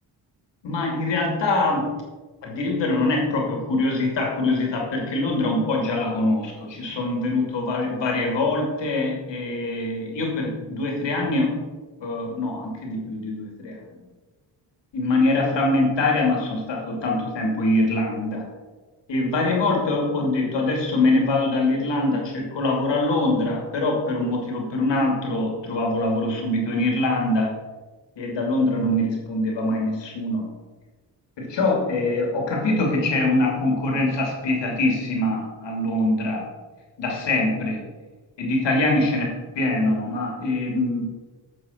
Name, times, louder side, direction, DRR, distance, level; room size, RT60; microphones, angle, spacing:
voice 1, 0.6-1.9 2.4-11.5 12.0-13.8 14.9-18.4 19.1-27.5 28.2-30.5 31.4-36.5 37.0-37.8 38.4-41.0, left 2 dB, 85° left, 0 dB, 2.8 m, -23 dB
8.8 x 5.8 x 6.6 m, 1.2 s
cardioid pair, 65°, 43 cm